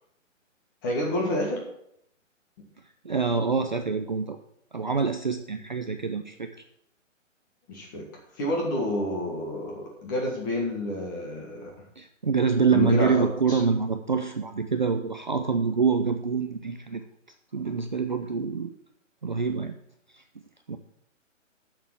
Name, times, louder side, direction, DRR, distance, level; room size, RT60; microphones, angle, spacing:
voice 1, 0.8-1.6 2.6-2.7 7.7-8.0 8.3-11.7 12.7-13.6, left 1 dB, 15° left, -1 dB, 1.6 m, -29 dB
voice 2, 3.0-4.4 4.7-6.5 12.0-17.0 17.5-18.7 19.2-19.8 20.1-20.2 20.7-20.8, right 5 dB, 40° right, 6 dB, 0.5 m, -26 dB
8.8 x 6.7 x 7.3 m, 0.76 s
hypercardioid pair, 170°, 39 cm